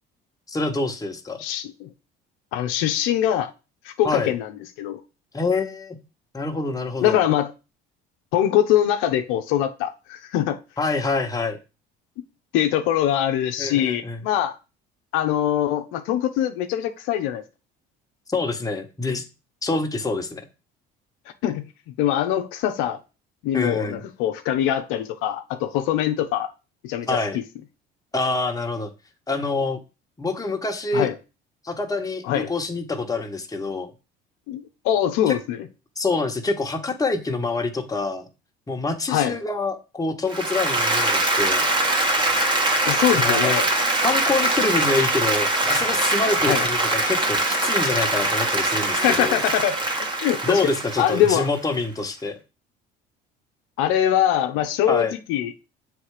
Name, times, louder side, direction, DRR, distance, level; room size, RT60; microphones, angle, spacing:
voice 1, 0.5-1.4 4.0-4.3 5.3-6.0 6.3-7.2 10.8-11.6 13.6-14.2 18.3-19.2 19.6-20.4 23.5-24.0 27.1-27.4 28.1-28.9 29.3-29.8 30.2-31.1 31.6-33.9 35.3-35.4 36.0-38.2 38.7-41.6 43.1-43.5 44.0-49.4 50.4-52.4 54.9-55.1, left 3 dB, 15° left, 1.3 m, -26 dB
voice 2, 1.4-1.9 2.5-3.5 3.8-4.5 4.8-5.0 7.0-7.5 8.3-10.6 12.5-14.6 15.1-17.4 21.4-21.6 22.0-23.0 23.4-26.5 26.8-27.4 30.9-31.1 32.2-32.5 34.5-35.6 39.1-39.4 42.8-43.7 46.4-46.7 49.0-49.8 50.2-50.6 51.0-51.5 53.8-55.5, left 11 dB, 80° left, 0.7 m, -23 dB
Applause, 40.3-51.6, right 2 dB, 20° right, 1.5 m, -22 dB
7.2 x 3.4 x 4.8 m
supercardioid pair, 85°, 21 cm